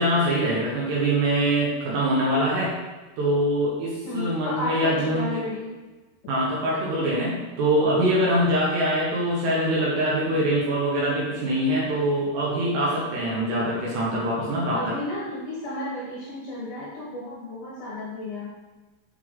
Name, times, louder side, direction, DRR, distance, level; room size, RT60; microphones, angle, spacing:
voice 1, 0.0-2.7 3.2-5.4 6.3-15.0, right 1 dB, 70° right, -5 dB, 2.9 m, -24 dB
voice 2, 4.0-5.7 6.2-6.3 7.0-7.4 14.7-18.5, left 2 dB, 70° left, -5 dB, 2.8 m, -33 dB
8.0 x 5.6 x 3.8 m, 1.2 s
omnidirectional pair, 6.0 m